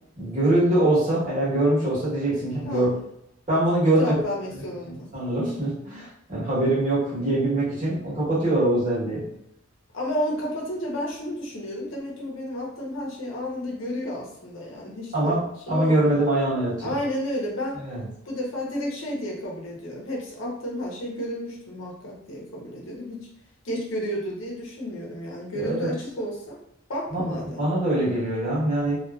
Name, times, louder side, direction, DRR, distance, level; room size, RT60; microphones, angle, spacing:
voice 1, 0.2-2.9 3.5-4.1 5.1-9.2 15.1-17.0 17.8-18.0 25.6-25.9 27.1-29.0, right 1 dB, 40° right, -7 dB, 1.0 m, -23 dB
voice 2, 2.5-2.9 4.0-5.1 9.9-15.4 15.7-16.2 16.8-17.8 18.3-23.3 23.6-26.6 26.9-27.6, equal, 80° left, -2 dB, 0.8 m, -31 dB
2.7 x 2.4 x 2.3 m, 0.78 s
head